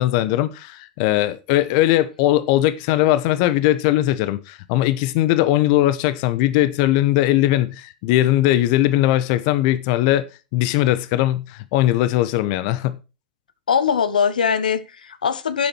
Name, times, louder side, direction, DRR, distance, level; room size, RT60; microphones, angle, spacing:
voice 1, 0.0-10.2 10.5-13.0, left 14 dB, 55° left, 1.1 m, -19 dB
voice 2, 13.7-15.7, left 7 dB, 80° left, 1.2 m, -21 dB
11.0 x 7.8 x 4.6 m
hypercardioid pair, 95°, 4 cm